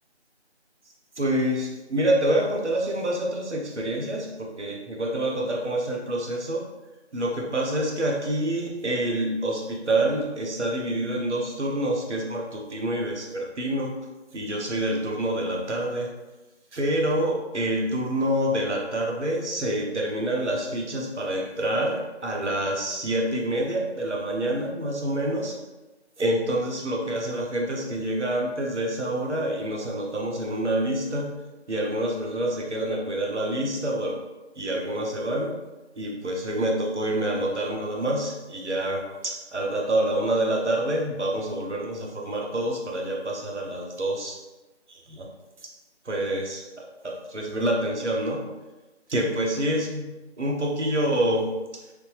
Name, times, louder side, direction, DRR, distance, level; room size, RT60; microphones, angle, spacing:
voice 1, 1.2-6.6 7.1-14.0 14.3-16.1 16.7-25.6 26.2-31.3 31.7-34.2 34.6-35.5 35.9-44.4 44.9-45.3 46.0-48.4 49.1-50.1 50.4-51.8, right 1 dB, 80° right, -1 dB, 0.9 m, -27 dB
3.3 x 2.1 x 3.3 m, 1.1 s
figure-of-eight pair, 170°, 34 cm